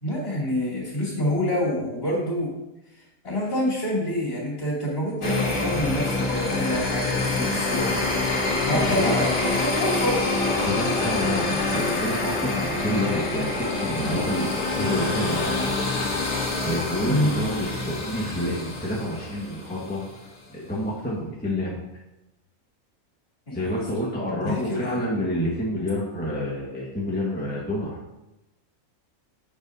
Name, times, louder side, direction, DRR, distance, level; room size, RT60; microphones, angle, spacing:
voice 1, 0.0-2.5 2.9-8.0 8.7-10.2 11.5-11.6 17.1-17.3 23.5-23.8 24.4-25.0, left 1 dB, 40° left, -5 dB, 2.9 m, -27 dB
sound 1, 5.2-20.0, left 3 dB, 75° left, 1.7 m, -26 dB
voice 2, 8.7-9.1 10.6-15.7 16.6-20.0 20.5-21.8 23.5-28.0, equal, 5° left, -5 dB, 1.3 m, -28 dB
9.6 x 7.2 x 2.7 m, 0.94 s
omnidirectional pair, 1.5 m